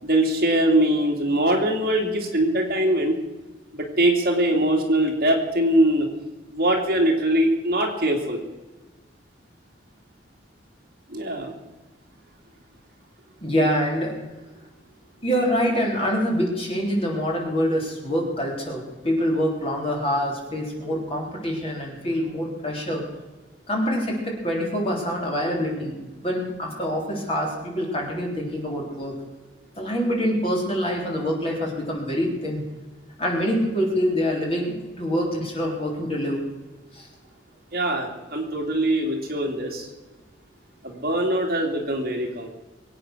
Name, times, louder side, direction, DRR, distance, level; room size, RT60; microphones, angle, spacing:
voice 1, 0.0-3.2 3.7-6.1 6.5-8.4 11.1-11.5 37.7-39.9 40.8-42.5, right 1 dB, 50° right, 1 dB, 2.7 m, -22 dB
voice 2, 13.4-14.2 15.2-23.0 23.7-26.0 26.2-29.2 29.8-32.6 33.2-36.4 36.9-37.1, equal, 30° left, -1 dB, 3.8 m, -25 dB
23.0 x 9.0 x 6.3 m, 1.1 s
head